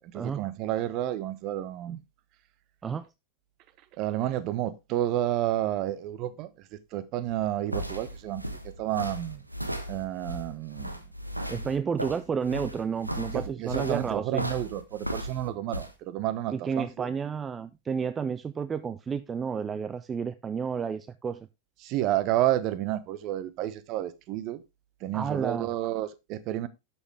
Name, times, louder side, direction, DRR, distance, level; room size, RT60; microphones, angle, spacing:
voice 1, 0.0-2.0 4.0-9.4 9.9-11.0 13.3-17.1 21.8-24.6 25.0-26.7, right 13 dB, 40° right, 1.0 m, -30 dB
sound 1, 7.3-15.9, equal, 85° right, 1.3 m, -36 dB
voice 2, 11.5-14.4 16.5-21.5 25.1-25.7, right 6 dB, 20° right, 0.5 m, -31 dB
11.0 x 7.2 x 3.4 m
figure-of-eight pair, 90°, 0 cm